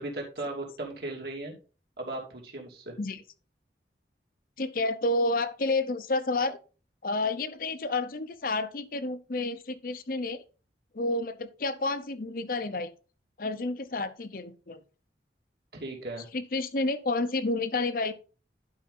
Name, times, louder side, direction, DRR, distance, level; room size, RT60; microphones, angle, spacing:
voice 1, 0.0-1.6 2.0-2.9 15.8-16.3, right 2 dB, 60° right, -1 dB, 2.8 m, -37 dB
voice 2, 4.6-6.6 7.0-10.4 10.9-12.9 13.4-14.8 16.3-18.1, left 2 dB, 50° left, 12 dB, 0.8 m, -30 dB
11.5 x 4.9 x 4.0 m, 0.36 s
head